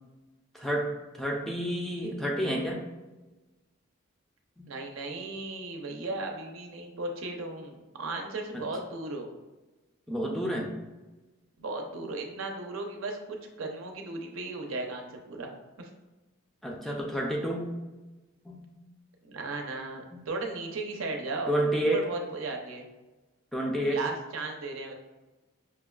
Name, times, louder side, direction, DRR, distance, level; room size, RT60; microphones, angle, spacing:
voice 1, 0.5-0.9 1.1-2.8 4.6-4.7 8.5-8.6 10.1-10.7 16.6-17.7 18.5-18.7 20.1-20.2 21.5-22.1 23.5-24.0, right 1 dB, ahead, -1 dB, 0.3 m, -29 dB
voice 2, 4.7-9.3 11.6-15.5 15.8-15.9 19.3-22.9 23.9-24.9, right 2 dB, 80° right, 3 dB, 0.5 m, -36 dB
5.5 x 2.2 x 2.3 m, 1.2 s
head